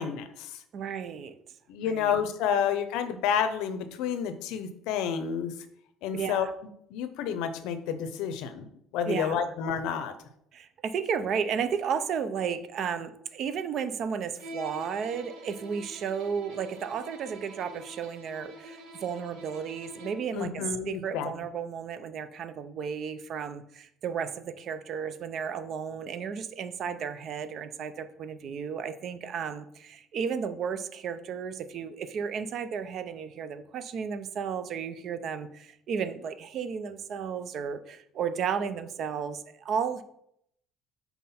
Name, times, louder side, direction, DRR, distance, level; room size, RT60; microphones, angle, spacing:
voice 1, 0.0-0.6 1.7-5.5 6.0-6.5 6.9-10.1 20.3-21.3, left 8 dB, 75° left, 11 dB, 0.6 m, -30 dB
voice 2, 0.7-1.3 1.9-2.1 6.1-6.5 9.1-9.4 10.5-40.0, right 7 dB, 40° right, 12 dB, 0.4 m, -33 dB
Bowed string instrument, 14.4-20.3, right 1 dB, 80° right, 1.2 m, -46 dB
5.6 x 4.2 x 4.2 m, 0.73 s
cardioid pair, 165°, 0 cm